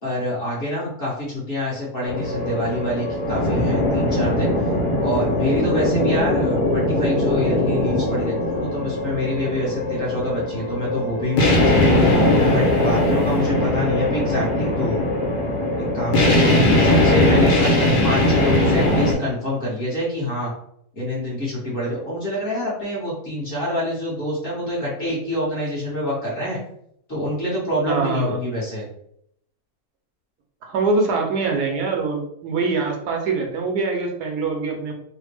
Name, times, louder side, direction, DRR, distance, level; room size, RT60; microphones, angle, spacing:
voice 1, 0.0-4.5 5.0-12.1 12.5-15.1 15.8-20.5 20.9-26.6 27.1-28.9, left 1 dB, 40° left, -7 dB, 1.3 m, -26 dB
sound 1, 2.1-19.1, left 1 dB, 80° left, 1.4 m, -20 dB
voice 2, 27.9-28.5 30.6-34.9, right 3 dB, 75° right, 2 dB, 1.2 m, -23 dB
3.4 x 2.1 x 3.3 m, 0.71 s
omnidirectional pair, 1.7 m